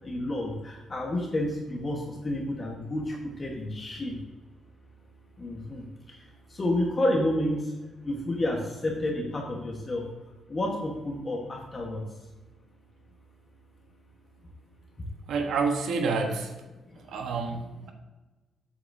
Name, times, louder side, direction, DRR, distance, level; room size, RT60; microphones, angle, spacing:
voice 1, 0.0-4.2 5.4-7.7 8.0-10.0 10.5-12.0 16.9-17.0 17.8-17.9, left 1 dB, 30° left, 0 dB, 1.1 m, -30 dB
voice 2, 15.3-16.5 17.0-17.9, right 4 dB, 80° right, 4 dB, 1.0 m, -28 dB
8.1 x 7.7 x 2.6 m, 1.2 s
cardioid pair, 135°, 0 cm